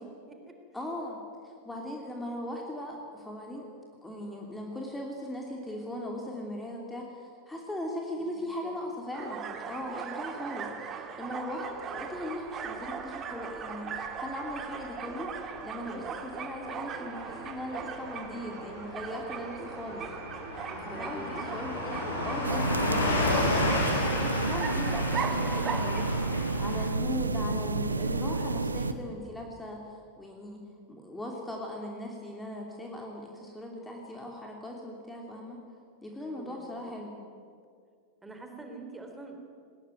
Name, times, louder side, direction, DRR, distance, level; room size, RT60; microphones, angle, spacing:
voice 1, 0.0-0.6 8.4-8.7 15.9-16.2 20.7-21.5 36.3-36.9 38.2-39.4, right 2 dB, 10° right, 4 dB, 3.6 m, -46 dB
voice 2, 0.7-3.6 4.0-15.3 15.6-20.1 20.8-23.2 23.7-35.6 36.0-37.1, left 1 dB, 5° left, 0 dB, 3.0 m, -39 dB
sound 1, 9.1-26.0, right 6 dB, 30° right, 1.9 m, -39 dB
Car passing by / Truck, 12.5-26.9, left 2 dB, 70° left, 5.2 m, -34 dB
sound 2, 22.4-28.9, right 3 dB, 80° right, 1.0 m, -30 dB
20.0 x 19.5 x 9.3 m, 2.2 s
figure-of-eight pair, 90°, 0 cm